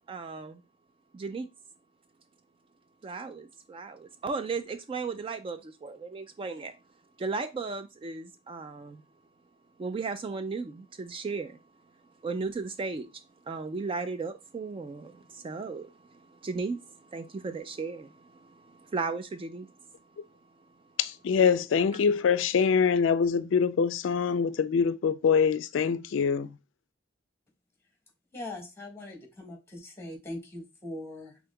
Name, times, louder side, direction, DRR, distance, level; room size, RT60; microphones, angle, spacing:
voice 1, 0.1-0.6 1.1-1.5 3.0-6.7 7.2-9.0 9.8-11.6 12.2-13.1 13.5-19.7, right 4 dB, 30° right, 0.3 m, -35 dB
voice 2, 21.0-26.6, left 6 dB, 75° left, 0.3 m, -24 dB
voice 3, 28.3-31.4, left 1 dB, 15° left, 1.5 m, -41 dB
5.2 x 3.6 x 2.2 m
head